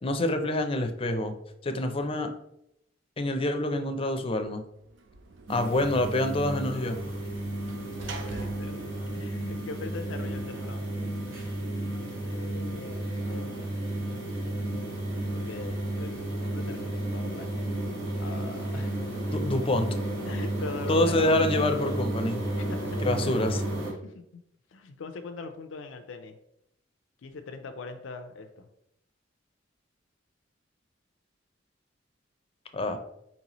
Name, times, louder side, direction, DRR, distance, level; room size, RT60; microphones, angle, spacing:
voice 1, 0.0-1.3 1.6-2.3 3.2-4.6 5.5-7.0 19.3-19.9 20.9-22.4 23.0-23.6 32.7-33.0, left 1 dB, 30° left, 6 dB, 0.5 m, -26 dB
Sliding door / Slam, 4.8-10.2, right 3 dB, 70° right, 0.5 m, -47 dB
sound 1, 5.5-23.9, right 1 dB, 90° right, 1.5 m, -32 dB
voice 2, 8.0-8.8 9.1-10.9 12.2-13.8 15.3-17.6 18.2-19.0 20.3-21.3 22.6-23.5 24.0-24.4 24.7-26.4 27.2-28.7, left 4 dB, 90° left, 6 dB, 0.5 m, -42 dB
4.4 x 4.0 x 2.9 m, 0.78 s
head